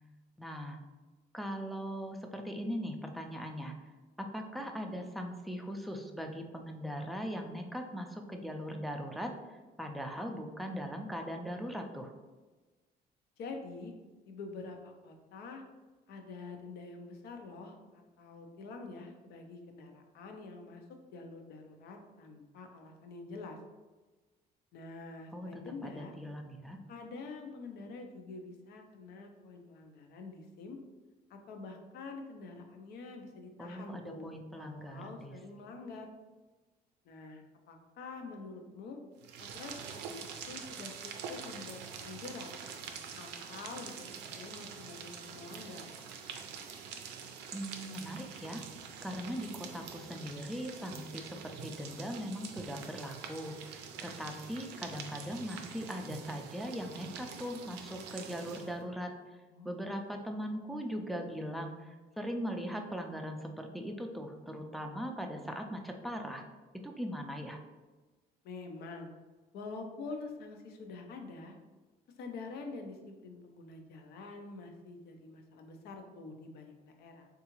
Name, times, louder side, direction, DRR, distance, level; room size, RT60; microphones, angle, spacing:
voice 1, 0.4-0.8 1.3-3.7 4.2-12.1 25.3-26.8 33.6-35.3 47.5-48.6 49.0-59.1 59.6-66.4 66.7-67.6, equal, ahead, 3 dB, 0.3 m, -40 dB
voice 2, 13.4-13.9 14.3-15.6 16.1-20.8 21.1-23.6 24.7-26.1 26.9-30.8 31.3-34.3 34.6-36.1 37.0-39.0 39.4-42.5 43.2-45.9 53.9-54.0 59.5-60.0 68.4-69.1 69.5-71.5 72.2-77.3, left 3 dB, 75° left, 4 dB, 0.5 m, -46 dB
sound 1, 39.2-58.8, right 6 dB, 85° right, 0.4 m, -46 dB
3.6 x 2.4 x 2.9 m, 1.3 s
cardioid pair, 110°, 17 cm